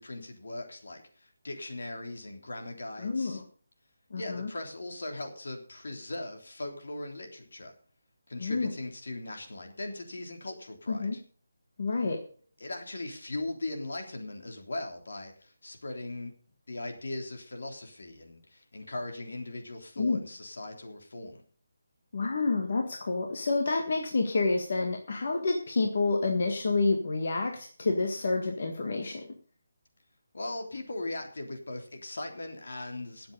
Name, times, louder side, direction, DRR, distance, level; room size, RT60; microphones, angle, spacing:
voice 1, 0.0-3.4 4.1-7.7 8.3-11.2 12.6-16.3 16.7-21.4 30.3-33.3, left 2 dB, 70° left, 4 dB, 3.4 m, -39 dB
voice 2, 3.0-3.4 4.1-4.5 8.4-8.7 10.9-11.2 11.8-12.2 20.0-20.2 22.1-29.3, left 3 dB, 45° left, 2 dB, 1.7 m, -28 dB
17.5 x 7.7 x 5.5 m, 0.42 s
hypercardioid pair, 180°, 0 cm